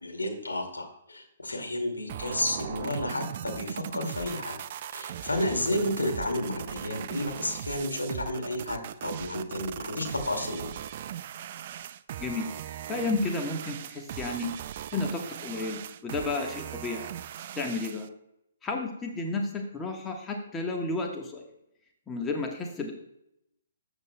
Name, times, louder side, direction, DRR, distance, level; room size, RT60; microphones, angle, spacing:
voice 1, 0.0-4.6 4.9-10.7, left 1 dB, 85° left, 3 dB, 2.2 m, -31 dB
sound 1, 2.1-18.1, right 10 dB, 45° right, 0.4 m, -39 dB
voice 2, 12.9-14.5 14.9-17.0 17.5-18.1 18.6-21.4 22.1-22.9, left 3 dB, 15° left, 2 dB, 1.3 m, -32 dB
13.5 x 8.2 x 2.2 m, 0.80 s
figure-of-eight pair, 130°, 0 cm